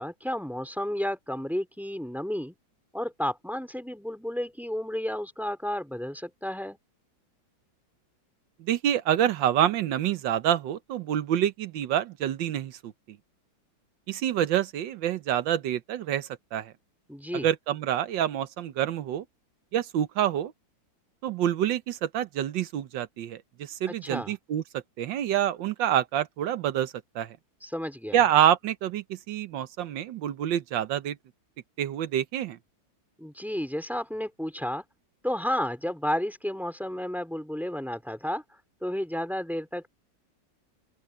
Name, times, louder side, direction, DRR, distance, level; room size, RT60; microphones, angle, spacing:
voice 1, 0.0-2.5 2.9-6.8 17.1-17.5 23.9-24.3 27.6-28.2 33.2-34.8 35.2-38.4 38.8-39.9, equal, ahead, 2.8 m, -32 dB
voice 2, 8.6-13.2 14.1-16.7 17.3-19.2 19.7-20.5 21.2-27.4 28.1-31.2 31.8-32.6, right 10 dB, 75° right, 1.6 m, -27 dB
open air
omnidirectional pair, 2.1 m